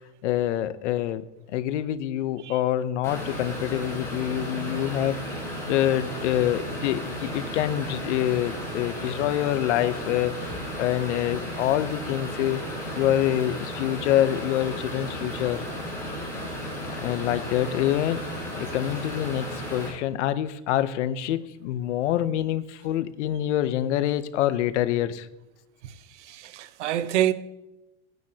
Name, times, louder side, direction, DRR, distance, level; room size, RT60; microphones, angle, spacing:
voice 1, 0.2-1.2 1.5-5.2 5.7-10.4 10.8-12.6 13.0-15.7 17.0-18.2 18.5-25.3, left 12 dB, 80° left, 0.8 m, -26 dB
sound 1, 3.0-19.9, equal, 10° left, 3.3 m, -34 dB
voice 2, 26.2-27.3, right 12 dB, 85° right, 0.9 m, -26 dB
15.5 x 9.2 x 2.8 m
supercardioid pair, 165°, 35 cm